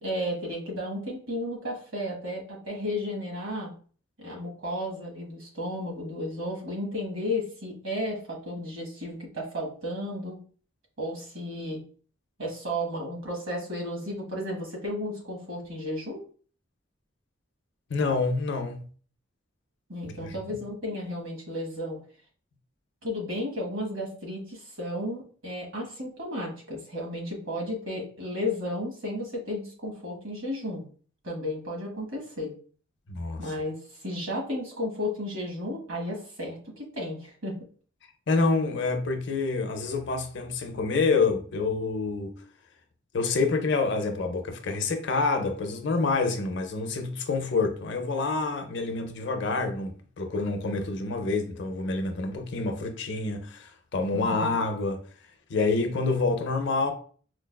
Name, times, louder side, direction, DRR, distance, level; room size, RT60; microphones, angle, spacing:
voice 1, 0.0-3.7 4.2-10.4 11.0-11.8 12.4-16.2 19.9-22.0 23.0-30.8 31.2-32.5 33.4-37.6 54.1-54.6, left 1 dB, 80° right, 1.2 m, -33 dB
voice 2, 17.9-18.8 20.0-20.6 33.1-33.5 38.3-42.4 43.1-55.0 55.5-56.9, left 3 dB, 60° left, 0.5 m, -27 dB
4.4 x 2.2 x 2.2 m
head